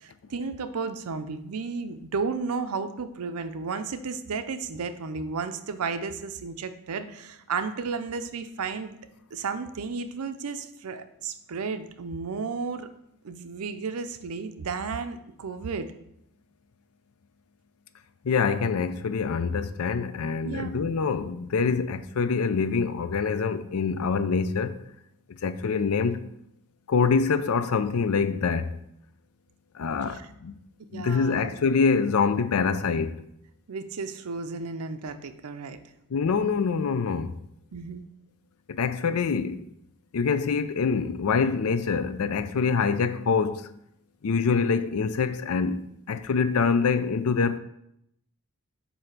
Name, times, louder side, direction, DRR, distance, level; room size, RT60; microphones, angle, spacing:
voice 1, 0.0-9.0 9.3-12.9 13.2-15.9 20.4-20.7 30.1-30.3 30.9-31.5 33.7-35.8 37.7-38.0, right 4 dB, 80° right, 0.5 m, -33 dB
voice 2, 18.2-24.8 25.4-26.3 26.9-28.7 29.7-30.5 30.9-33.2 36.1-37.3 38.7-39.6 40.1-43.7 44.2-47.6, left 5 dB, 80° left, 0.4 m, -25 dB
7.7 x 2.8 x 5.8 m
head